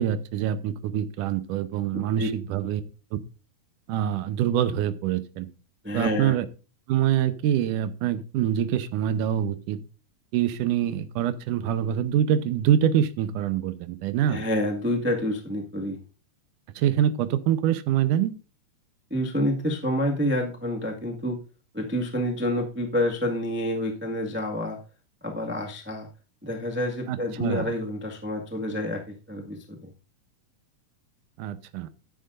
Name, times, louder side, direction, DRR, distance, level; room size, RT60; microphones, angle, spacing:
voice 1, 0.0-2.8 3.9-5.5 5.9-6.5 6.9-9.8 10.3-14.4 16.8-18.3 27.1-27.7 31.4-31.9, right 10 dB, 85° right, 12 dB, 2.3 m, -25 dB
voice 2, 1.9-2.3 5.8-6.4 14.3-16.0 19.1-21.4 21.7-24.8 25.2-26.1 26.4-29.9, left 1 dB, 10° right, 1 dB, 0.5 m, -28 dB
13.5 x 10.5 x 2.6 m, 0.33 s
omnidirectional pair, 3.7 m